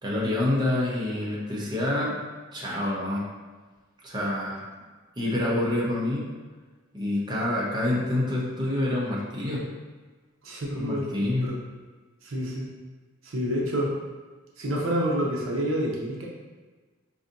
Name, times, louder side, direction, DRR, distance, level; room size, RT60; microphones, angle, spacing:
voice 1, 0.0-2.2 2.5-3.3 4.0-4.6 5.2-6.2 6.9-9.7 10.7-11.5, left 1 dB, 20° right, -5 dB, 0.7 m, -27 dB
voice 2, 10.4-11.1 11.4-11.6 12.2-12.7 13.2-13.9 14.6-16.3, equal, 70° right, -3 dB, 0.7 m, -28 dB
4.8 x 2.7 x 2.6 m, 1.3 s
head